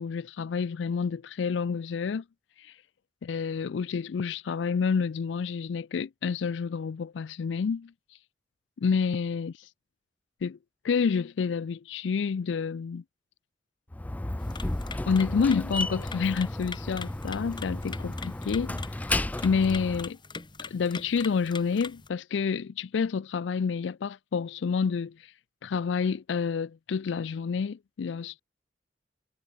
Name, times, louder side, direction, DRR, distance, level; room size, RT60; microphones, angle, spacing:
voice 1, 0.0-2.2 2.6-2.7 3.2-7.9 8.8-9.5 10.4-10.6 10.8-13.0 15.1-20.2 20.7-25.3 25.6-28.4, left 5 dB, 80° left, 0.4 m, -29 dB
Slam, 13.9-20.1, left 1 dB, 10° left, 0.3 m, -33 dB
sound 1, 14.4-22.1, left 5 dB, 25° left, 1.1 m, -44 dB
head